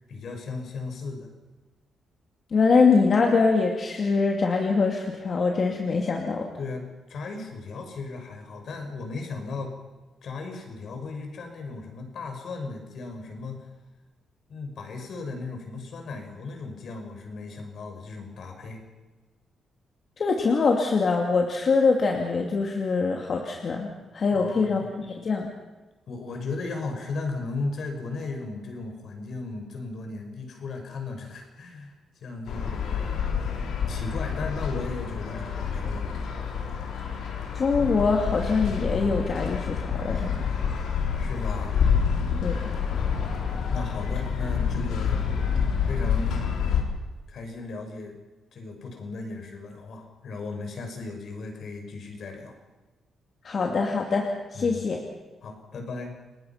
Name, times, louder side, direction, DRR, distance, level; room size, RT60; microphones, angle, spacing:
voice 1, 0.1-1.3 6.6-9.7 10.2-13.7 14.5-18.8 24.3-24.9 26.1-33.2 33.9-36.1 41.2-41.8 43.7-45.2 45.9-46.4 47.3-48.2 48.5-52.5 54.5-54.8 55.4-56.1, left 3 dB, 65° left, 4 dB, 5.6 m, -36 dB
voice 2, 2.5-6.5 20.2-25.5 37.5-40.5 42.4-42.6 53.4-55.0, left 4 dB, 45° left, 1 dB, 2.5 m, -24 dB
sound 1, 32.5-46.8, left 6 dB, 85° left, 3.7 m, -28 dB
29.5 x 19.5 x 5.8 m, 1.2 s
cardioid pair, 100°, 0 cm